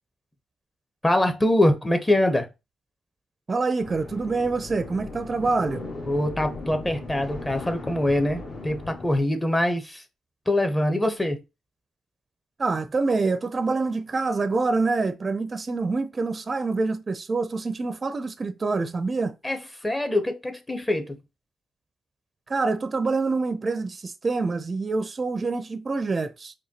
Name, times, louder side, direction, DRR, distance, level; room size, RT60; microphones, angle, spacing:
voice 1, 1.0-2.5 6.1-10.0 10.5-11.4 19.4-21.2, left 1 dB, 15° left, 0.9 m, -24 dB
voice 2, 3.5-5.9 12.6-19.3 22.5-26.5, right 3 dB, 35° right, 0.5 m, -26 dB
sound 1, 3.8-9.2, left 3 dB, 55° left, 1.6 m, -38 dB
4.8 x 2.3 x 2.8 m
cardioid pair, 70°, 0 cm